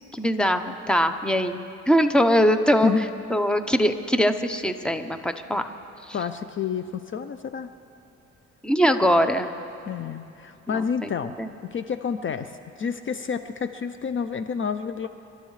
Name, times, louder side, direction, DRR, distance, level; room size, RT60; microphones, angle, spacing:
voice 1, 0.1-1.6 1.9-2.9 3.3-5.6 6.1-6.2 8.6-9.5 10.7-11.1 11.4-11.5, equal, 5° left, 8 dB, 0.8 m, -22 dB
voice 2, 6.1-7.7 9.9-11.3 11.6-15.1, left 6 dB, 40° left, 10 dB, 0.6 m, -29 dB
29.0 x 12.5 x 3.2 m, 2.9 s
cardioid pair, 90°, 30 cm